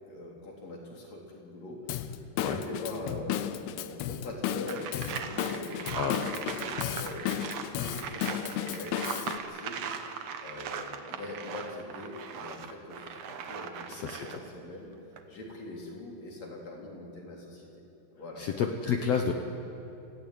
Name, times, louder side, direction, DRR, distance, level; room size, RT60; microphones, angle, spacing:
voice 1, 0.0-9.9 10.4-14.9 15.3-17.7 18.1-18.5, left 2 dB, 45° left, -2 dB, 4.8 m, -43 dB
Drum kit / Drum, 1.9-9.4, left 11 dB, 90° left, 2.7 m, -34 dB
sound 1, 4.7-14.5 15.0-15.2, right 7 dB, 70° right, 1.5 m, -39 dB
voice 2, 13.9-14.4 18.4-19.3, left 6 dB, 75° left, 4 dB, 1.5 m, -30 dB
27.0 x 16.0 x 9.2 m, 2.9 s
omnidirectional pair, 4.4 m